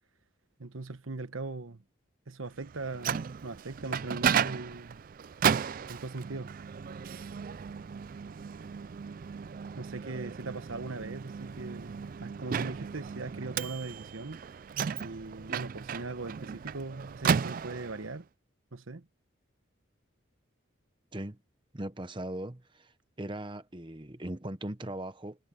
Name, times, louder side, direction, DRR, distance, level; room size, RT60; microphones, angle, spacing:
voice 1, 0.6-1.8 2.3-5.0 5.9-6.5 9.8-14.4 15.0-18.3 18.7-19.1, right 3 dB, 80° right, 1.2 m, -40 dB
Microwave oven, 2.7-18.1, right 7 dB, 45° right, 0.3 m, -34 dB
voice 2, 21.7-22.9 23.2-25.5, right 1 dB, 25° right, 1.0 m, -39 dB
head